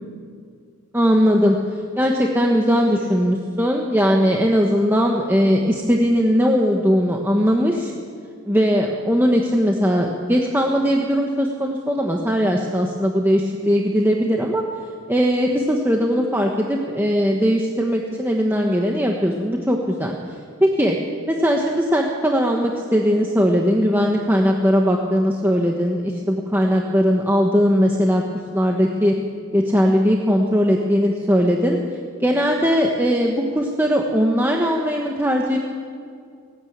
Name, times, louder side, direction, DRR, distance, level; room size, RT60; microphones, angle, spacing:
voice 1, 0.9-1.6 2.0-7.9 8.5-14.6 15.1-20.1 20.6-21.0 21.3-28.2 28.5-29.1 29.5-31.8 32.2-35.6, equal, 10° right, 0 dB, 1.2 m, -19 dB
19.0 x 16.5 x 8.7 m, 2.2 s
head